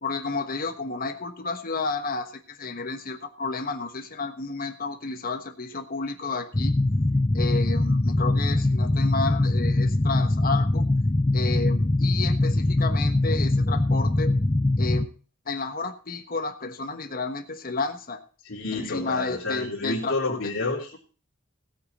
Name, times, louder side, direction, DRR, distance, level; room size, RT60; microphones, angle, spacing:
voice 1, 0.0-6.7 7.3-10.8 11.3-14.3 14.8-15.1 15.4-18.2 18.7-20.4, left 3 dB, 40° left, 6 dB, 1.3 m, -31 dB
sound 1, 6.5-15.1, left 2 dB, 20° left, 0.6 m, -22 dB
voice 2, 18.4-21.0, left 3 dB, 60° left, -7 dB, 3.6 m, -29 dB
16.5 x 8.6 x 4.2 m, 0.38 s
head